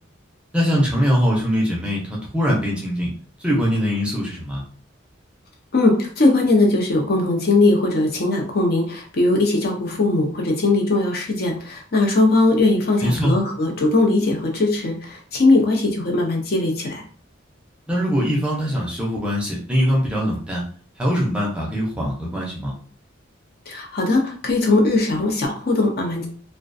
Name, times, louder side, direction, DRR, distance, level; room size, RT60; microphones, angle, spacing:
voice 1, 0.5-3.1 3.4-4.6 13.0-13.4 17.9-20.6 21.0-22.7, equal, 5° right, -4 dB, 0.5 m, -22 dB
voice 2, 5.7-17.0 23.7-26.3, left 2 dB, 50° left, 1 dB, 0.6 m, -19 dB
2.3 x 2.2 x 2.5 m, 0.43 s
head